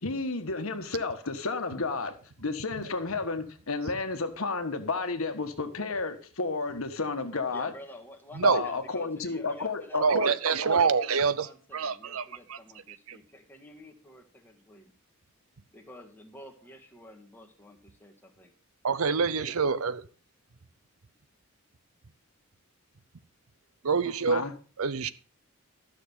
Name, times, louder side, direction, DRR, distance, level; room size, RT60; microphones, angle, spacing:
voice 1, 0.0-7.7 8.4-10.3 24.3-24.5, left 3 dB, 70° left, 1.4 m, -32 dB
voice 2, 7.5-10.0 10.6-14.9 15.7-18.5 19.0-19.5, left 1 dB, 10° left, 1.6 m, -49 dB
voice 3, 10.0-11.5 11.7-12.2 12.5-12.6 13.1-13.2 18.8-20.0 23.8-24.5 24.8-25.1, right 5 dB, 75° right, 0.7 m, -26 dB
13.0 x 6.5 x 5.5 m
head